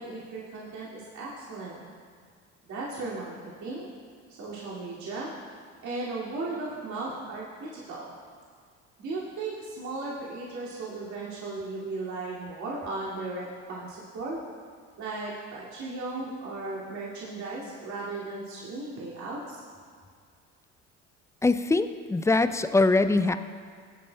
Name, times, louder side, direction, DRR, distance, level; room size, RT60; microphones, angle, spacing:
voice 1, 0.0-1.8 2.7-3.4 3.6-3.9 4.3-5.3 5.8-8.1 9.0-14.4 15.0-19.6, right 3 dB, 50° right, -7 dB, 2.5 m, -36 dB
voice 2, 21.4-23.4, left 3 dB, 10° left, 11 dB, 0.4 m, -23 dB
19.5 x 8.3 x 2.3 m, 2.1 s
hypercardioid pair, 65°, 36 cm